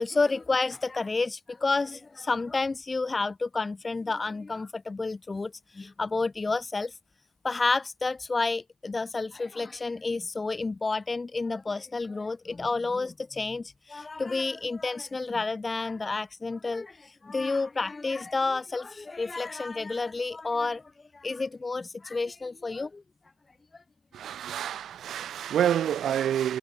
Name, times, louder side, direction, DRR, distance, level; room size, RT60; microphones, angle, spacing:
voice 1, 0.0-6.9 7.4-20.8 21.1-23.0, left 3 dB, 20° left, 0.8 m, -30 dB
voice 2, 24.1-26.6, right 10 dB, 50° right, 7.4 m, -28 dB
cardioid pair, 115°, 0 cm